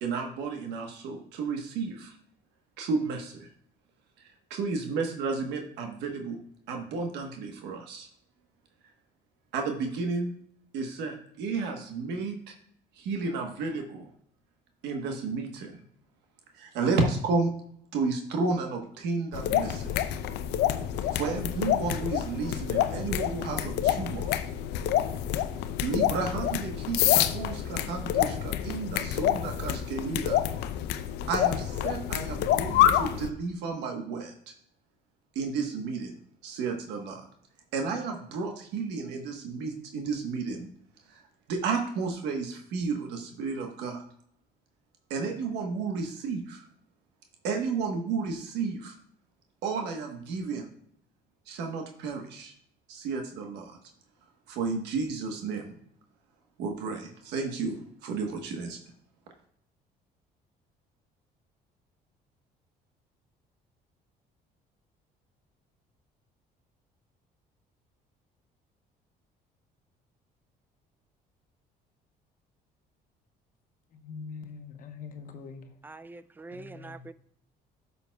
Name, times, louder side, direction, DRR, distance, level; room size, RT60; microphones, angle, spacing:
voice 1, 0.0-2.2 2.8-3.5 4.2-6.4 6.7-8.1 9.5-10.3 10.7-12.5 13.0-14.1 14.8-15.8 16.5-17.5 17.9-20.0 21.1-24.3 25.8-30.4 31.3-34.5 35.3-36.1 36.4-37.3 37.7-40.7 41.1-41.2 41.5-44.0 45.1-46.6 47.4-48.9 49.6-50.7 51.5-52.5 52.9-53.8 54.5-55.7 56.6-58.8, right 4 dB, 85° right, 1.2 m, -32 dB
sound 1, 19.3-33.3, left 11 dB, 85° left, 0.6 m, -27 dB
voice 2, 73.9-75.7 76.5-77.1, left 5 dB, 55° left, 0.9 m, -43 dB
voice 3, 75.8-77.1, right 3 dB, 10° right, 0.3 m, -44 dB
10.5 x 6.9 x 2.3 m
cardioid pair, 110°, 17 cm